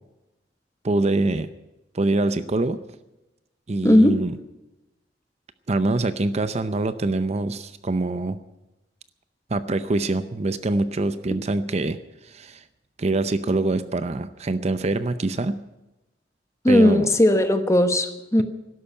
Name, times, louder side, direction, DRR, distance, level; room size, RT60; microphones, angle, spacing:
voice 1, 0.8-1.5 1.9-2.8 3.7-4.4 5.7-8.4 9.5-12.0 12.2-12.6 13.0-15.6 16.7-17.1, right 2 dB, 40° right, 12 dB, 0.6 m, -24 dB
voice 2, 3.8-4.2 11.3-11.4 16.6-18.4, left 1 dB, 15° left, 8 dB, 1.1 m, -17 dB
12.5 x 11.0 x 8.8 m, 0.98 s
head